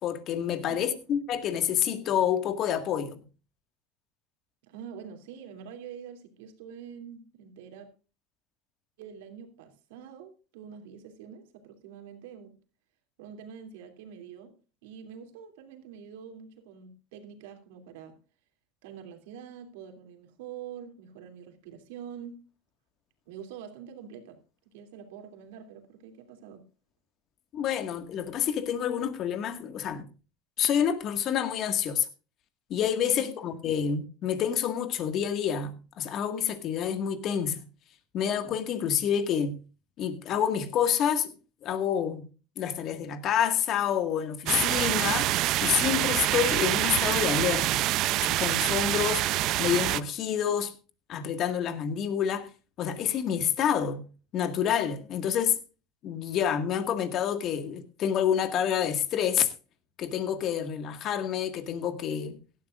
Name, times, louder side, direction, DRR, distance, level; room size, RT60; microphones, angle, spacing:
voice 1, 0.0-3.2 27.5-30.1 30.6-32.1 32.7-37.6 38.1-39.6 40.0-41.3 41.6-42.2 42.6-45.3 45.6-47.9 48.2-49.2 49.6-50.7 51.1-52.5 52.8-54.0 54.3-55.6 56.0-59.5 60.0-62.4, left 9 dB, 45° left, 1.9 m, -28 dB
voice 2, 0.7-1.0 4.6-7.9 9.0-12.6 13.2-18.2 18.8-22.5 23.3-24.4 24.6-26.7 33.0-33.4, right 8 dB, 80° right, 2.9 m, -45 dB
sound 1, 44.5-50.0, right 16 dB, 55° right, 0.6 m, -26 dB
17.0 x 12.5 x 2.5 m
supercardioid pair, 125°, 0 cm